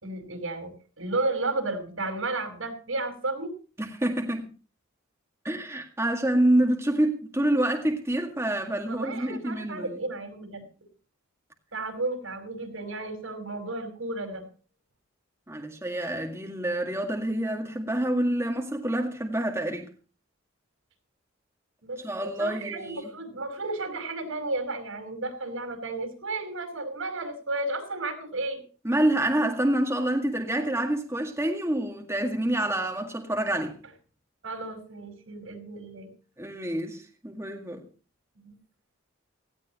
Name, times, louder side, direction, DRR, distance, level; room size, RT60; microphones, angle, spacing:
voice 1, 0.0-3.5 8.8-10.6 11.7-14.4 21.8-22.0 22.4-28.6 34.4-36.1 38.4-38.6, right 2 dB, 80° right, 5.1 m, -33 dB
voice 2, 3.8-4.5 5.4-10.0 15.5-19.9 22.0-23.1 28.8-33.8 36.4-37.8, right 1 dB, 15° right, 1.9 m, -27 dB
18.0 x 16.0 x 3.0 m
head